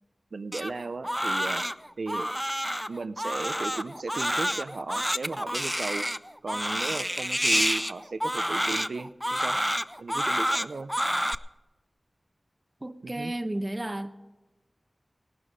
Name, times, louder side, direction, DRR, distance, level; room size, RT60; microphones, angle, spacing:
voice 1, 0.3-1.7 2.0-2.3 2.9-6.1 6.4-9.6 10.0-10.9 13.0-13.3, right 3 dB, 90° right, 0.5 m, -36 dB
Crying sobbing, 0.5-11.3, equal, ahead, 0.4 m, -28 dB
voice 2, 12.8-14.1, right 1 dB, 35° right, 0.9 m, -32 dB
17.0 x 11.5 x 5.0 m
wide cardioid pair, 45°, 0 cm